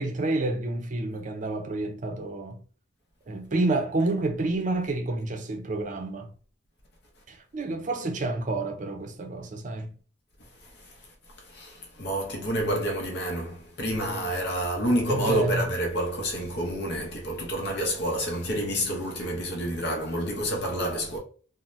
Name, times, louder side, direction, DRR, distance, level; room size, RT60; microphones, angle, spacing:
voice 1, 0.0-2.6 3.3-6.3 7.3-9.9 15.1-15.7, right 2 dB, 45° right, 0.5 m, -29 dB
voice 2, 11.5-21.2, equal, 60° left, 0.7 m, -28 dB
2.6 x 2.1 x 3.1 m
head